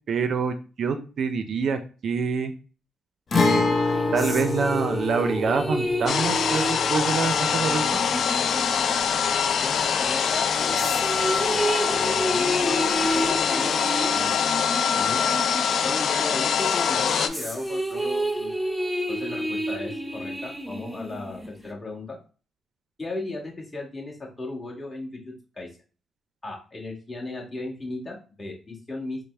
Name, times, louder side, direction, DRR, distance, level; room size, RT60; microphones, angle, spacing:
voice 1, 0.1-2.5 3.3-3.6 4.1-8.0, right 5 dB, 60° right, 9 dB, 0.4 m, -26 dB
Guitar, 3.3-10.9 11.2-11.3 13.3-13.4, left 3 dB, 45° left, 0.8 m, -28 dB
sound 1, 3.7-9.7 10.2-16.2 16.6-21.7, right 1 dB, ahead, 0.6 m, -31 dB
sound 2, 6.1-17.3, left 7 dB, 65° left, 0.4 m, -24 dB
voice 2, 9.6-14.6 14.9-15.2 15.8-18.5 19.1-22.2 23.0-25.7 26.4-29.2, left 2 dB, 25° left, -2 dB, 1.5 m, -36 dB
4.0 x 2.0 x 3.3 m, 0.36 s
cardioid pair, 80°, 0 cm